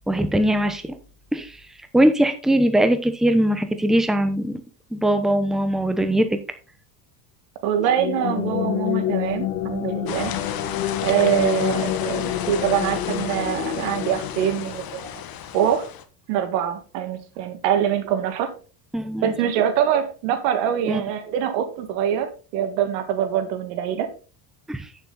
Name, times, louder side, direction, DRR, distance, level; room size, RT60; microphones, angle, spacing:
voice 1, 0.1-1.0 1.3-4.6 4.9-6.4 18.9-19.3 20.9-21.0 24.7-24.9, right 1 dB, ahead, 9 dB, 0.9 m, -21 dB
voice 2, 7.6-10.3 11.0-15.2 15.5-15.9 16.3-18.5 19.2-24.1, right 9 dB, 85° right, 9 dB, 1.8 m, -24 dB
sound 1, 7.7-15.2, left 12 dB, 90° left, 1.9 m, -28 dB
sound 2, 10.1-16.0, left 10 dB, 45° left, 1.3 m, -33 dB
8.7 x 7.2 x 3.9 m, 0.36 s
supercardioid pair, 110°, 48 cm